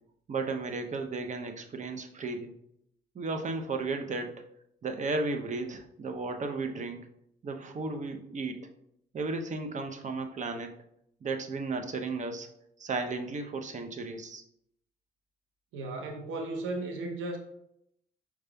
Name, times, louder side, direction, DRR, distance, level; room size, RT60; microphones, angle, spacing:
voice 1, 0.3-2.5 3.1-4.5 4.8-7.0 7.4-8.7 9.1-10.7 11.2-12.5 12.8-14.4, right 3 dB, 40° right, 5 dB, 0.7 m, -34 dB
voice 2, 15.7-17.4, right 2 dB, 90° right, 3 dB, 0.7 m, -35 dB
5.1 x 4.6 x 2.2 m, 0.75 s
cardioid pair, 90°, 20 cm